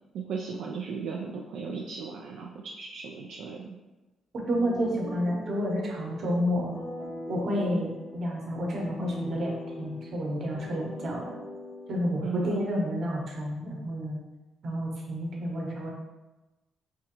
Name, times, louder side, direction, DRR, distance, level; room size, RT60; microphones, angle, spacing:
voice 1, 0.1-3.8 12.2-12.6, right 5 dB, 75° right, -1 dB, 0.3 m, -36 dB
sound 1, 4.5-12.7, left 1 dB, 15° left, 0.8 m, -40 dB
voice 2, 4.5-6.7 7.3-9.5 9.8-11.2 11.9-14.2 14.6-15.9, equal, 55° right, -2 dB, 1.0 m, -30 dB
4.4 x 2.5 x 2.9 m, 1.1 s
cardioid pair, 90°, 0 cm